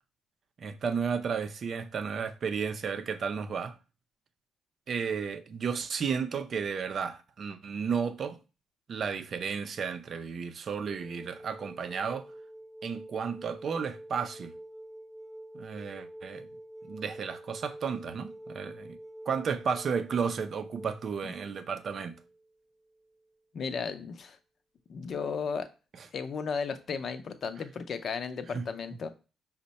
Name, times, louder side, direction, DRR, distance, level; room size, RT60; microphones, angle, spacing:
voice 1, 0.6-3.7 4.9-8.4 8.9-12.3 12.8-14.5 15.5-16.5 16.9-19.0 19.3-22.1 28.5-28.6, right 6 dB, 50° right, 0.5 m, -33 dB
sound 1, 10.9-23.3 25.1-25.2, right 1 dB, 5° left, 0.8 m, -47 dB
voice 2, 23.5-24.4 24.9-25.7 26.1-29.1, left 5 dB, 55° left, 0.6 m, -34 dB
5.3 x 2.2 x 4.0 m
cardioid pair, 90°, 0 cm